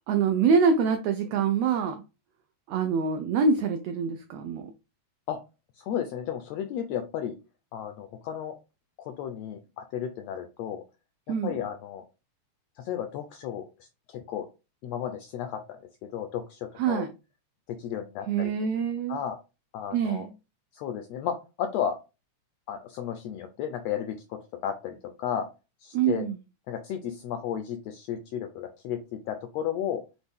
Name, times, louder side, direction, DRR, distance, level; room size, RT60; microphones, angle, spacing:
voice 1, 0.1-2.0 2.7-4.7 11.3-11.6 16.8-17.1 18.3-19.2 19.9-20.3 25.9-26.4, right 5 dB, 85° right, 6 dB, 1.4 m, -25 dB
voice 2, 5.7-7.4 7.7-8.6 9.0-10.8 11.4-12.0 12.8-14.5 14.8-15.6 16.0-17.0 17.8-18.5 19.1-19.4 19.7-20.3 20.7-22.0 22.7-25.5 25.8-26.2 26.7-30.0, left 9 dB, 85° left, 6 dB, 1.5 m, -33 dB
6.0 x 2.1 x 3.5 m, 0.29 s
omnidirectional pair, 3.4 m